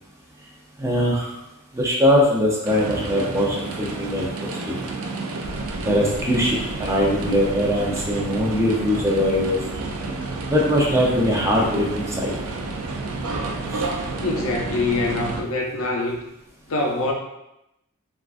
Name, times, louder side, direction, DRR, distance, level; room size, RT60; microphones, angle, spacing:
voice 1, 0.8-1.3 1.7-4.8 5.8-9.6 10.5-12.3 13.7-13.8, equal, 15° right, -3 dB, 0.5 m, -21 dB
sound 1, 2.6-15.4, right 3 dB, 75° right, 0.4 m, -30 dB
voice 2, 14.2-16.2 16.7-17.1, left 2 dB, 65° left, 1 dB, 0.5 m, -24 dB
3.5 x 2.4 x 2.4 m, 0.86 s
head